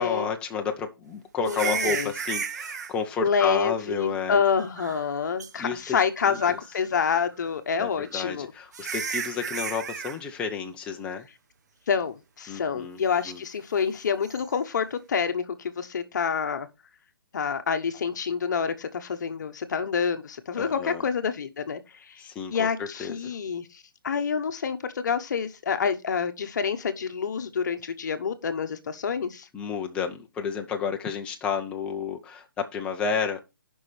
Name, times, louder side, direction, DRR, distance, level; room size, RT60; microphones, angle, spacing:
voice 1, 0.0-4.4 5.6-6.0 6.2-6.6 7.8-11.3 12.5-13.4 20.6-21.1 22.2-23.3 29.5-33.4, left 6 dB, 10° left, 0.7 m, -31 dB
voice 2, 1.4-2.1 3.2-8.5 8.9-9.0 11.9-16.7 17.3-21.8 22.1-22.2 22.5-29.5, left 6 dB, 55° left, 1.0 m, -27 dB
sound 1, 1.4-2.9 4.6-5.1 5.4-5.5 6.2-6.7 8.1-8.2 8.7-10.2 14.2-14.4, right 6 dB, 50° right, 0.9 m, -33 dB
15.5 x 5.5 x 3.3 m
hypercardioid pair, 160°, 12 cm